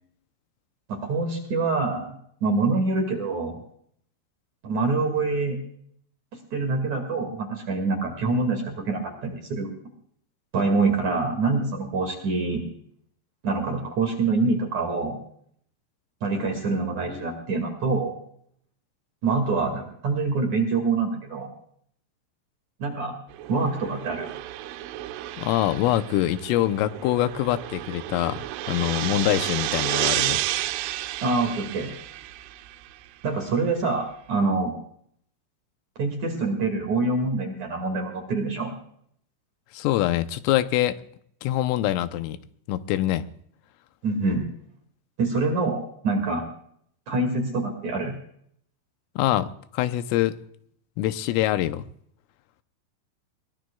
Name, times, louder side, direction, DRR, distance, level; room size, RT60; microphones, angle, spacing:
voice 1, 0.9-3.6 4.6-5.6 6.5-9.7 10.5-12.6 13.4-15.2 16.2-18.2 19.2-21.5 22.8-23.1 23.5-24.3 31.2-31.9 33.2-34.7 36.0-38.7 44.0-44.4 45.2-46.4 47.1-48.1, right 3 dB, 50° right, 2.7 m, -25 dB
sound 1, 23.3-32.9, right 14 dB, 80° right, 3.1 m, -31 dB
voice 2, 25.4-30.4 39.7-41.0 41.4-42.4 42.7-43.3 49.2-50.4 51.0-51.9, left 13 dB, 90° left, 3.3 m, -24 dB
21.5 x 20.5 x 2.3 m
omnidirectional pair, 5.7 m